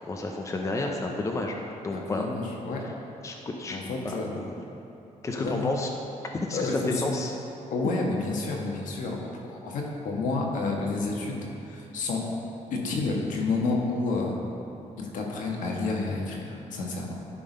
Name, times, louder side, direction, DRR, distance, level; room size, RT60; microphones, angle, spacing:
voice 1, 0.1-1.5 1.8-2.2 3.2-3.8 4.0-4.6 5.2-5.9 6.3-7.3, left 2 dB, 25° left, 1 dB, 0.6 m, -31 dB
voice 2, 1.9-2.8 3.7-4.4 5.4-5.8 6.5-6.9 7.7-9.2 9.4-12.3 12.7-14.4 15.0-17.2, left 3 dB, 75° left, -1 dB, 1.3 m, -30 dB
11.5 x 3.9 x 5.1 m, 2.8 s
cardioid pair, 120°, 13 cm